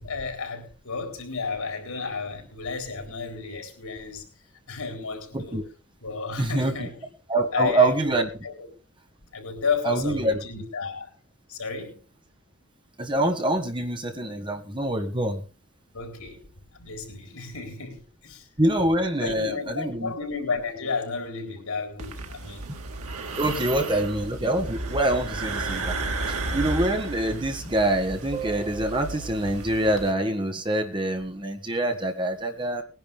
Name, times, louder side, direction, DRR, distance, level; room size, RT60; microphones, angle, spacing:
voice 1, 0.0-4.2 4.7-5.6 6.0-6.9 7.5-8.2 8.4-8.7 9.3-11.1 11.5-12.0 15.9-16.5 16.7-18.5 19.2-22.7 23.5-24.0, left 4 dB, 85° left, 4 dB, 4.2 m, -32 dB
voice 2, 6.4-6.9 7.3-8.3 9.9-10.4 13.0-15.4 18.6-20.1 23.4-26.0 26.3-32.8, right 1 dB, 20° right, 5 dB, 1.7 m, -25 dB
sound 1, 22.0-30.1, right 2 dB, 90° right, 1.9 m, -33 dB
20.0 x 10.5 x 3.6 m, 0.33 s
head